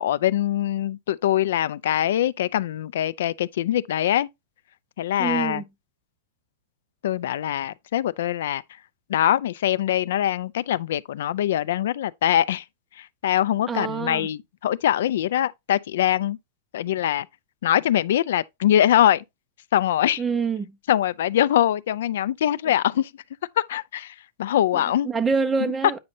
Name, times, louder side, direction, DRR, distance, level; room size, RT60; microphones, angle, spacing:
voice 1, 0.0-4.3 5.0-5.6 7.0-8.6 9.1-12.6 13.0-16.4 16.7-17.3 17.6-19.2 19.7-20.2 20.9-23.1 23.6-25.1, left 11 dB, 65° left, 0.3 m, -23 dB
voice 2, 5.2-5.6 13.7-14.3 20.2-20.7 24.7-26.0, right 5 dB, 10° right, 0.4 m, -26 dB
8.6 x 5.3 x 2.7 m
supercardioid pair, 175°, 0 cm